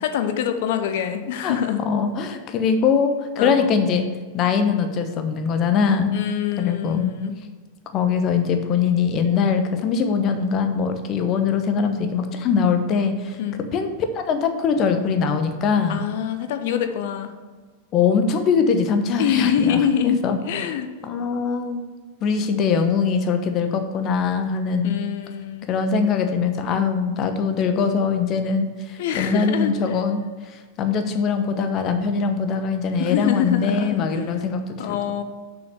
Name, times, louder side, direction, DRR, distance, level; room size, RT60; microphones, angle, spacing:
voice 1, 0.0-1.8 3.4-3.7 6.1-7.4 13.4-13.6 15.9-17.3 19.2-20.2 20.5-20.9 24.8-25.7 29.0-30.0 33.0-34.2 34.8-35.2, left 9 dB, 50° left, 8 dB, 0.8 m, -25 dB
voice 2, 1.4-4.1 4.3-6.2 6.6-7.1 7.9-13.4 13.7-16.0 17.9-20.4 21.0-21.9 22.2-25.0 25.7-30.2 30.5-35.0, left 6 dB, 35° left, 7 dB, 1.0 m, -22 dB
6.3 x 5.9 x 6.3 m, 1.4 s
figure-of-eight pair, 90°, 0 cm